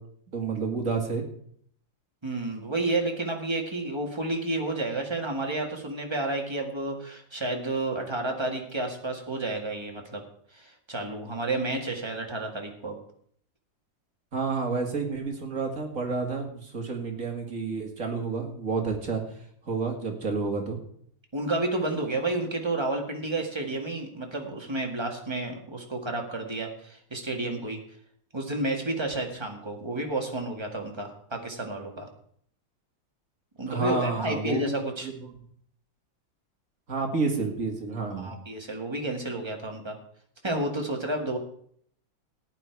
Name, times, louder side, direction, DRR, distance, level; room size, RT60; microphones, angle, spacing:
voice 1, 0.3-1.2 14.3-19.2 19.7-20.8 33.7-35.3 36.9-38.3, right 4 dB, 45° right, 2 dB, 2.5 m, -30 dB
voice 2, 2.2-10.2 10.5-13.0 21.3-27.8 28.3-32.1 33.6-35.1 38.2-39.9 40.4-41.4, right 2 dB, 15° right, 1 dB, 1.9 m, -31 dB
14.5 x 9.7 x 4.7 m, 0.64 s
omnidirectional pair, 2.0 m